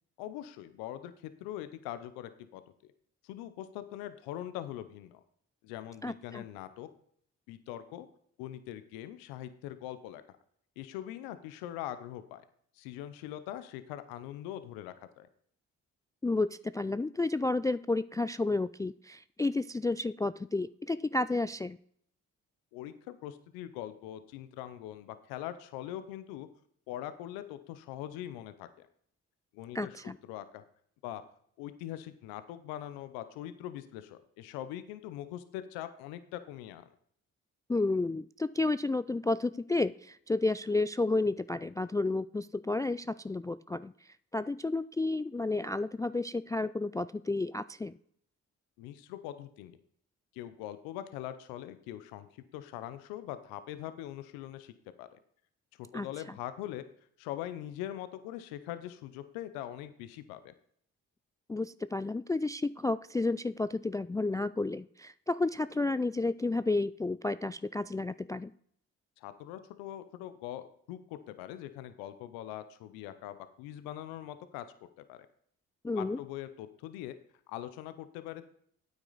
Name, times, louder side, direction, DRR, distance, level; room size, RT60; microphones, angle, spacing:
voice 1, 0.2-2.6 3.2-5.2 5.6-6.9 7.5-8.1 8.4-10.2 10.8-12.4 12.7-15.3 22.7-26.5 26.9-28.9 29.5-30.6 31.0-31.2 31.6-36.9 48.8-49.8 50.3-54.7 55.0-55.2 55.8-56.8 57.2-60.5 69.2-74.6 75.1-75.2 76.0-77.1 77.5-78.5, left 12 dB, 90° left, 12 dB, 0.7 m, -42 dB
voice 2, 6.0-6.4 16.2-21.8 29.7-30.2 37.7-47.9 55.9-56.1 61.5-68.5 75.8-76.2, left 2 dB, 10° left, 15 dB, 0.3 m, -31 dB
9.2 x 8.9 x 4.0 m, 0.63 s
hypercardioid pair, 45°, 35 cm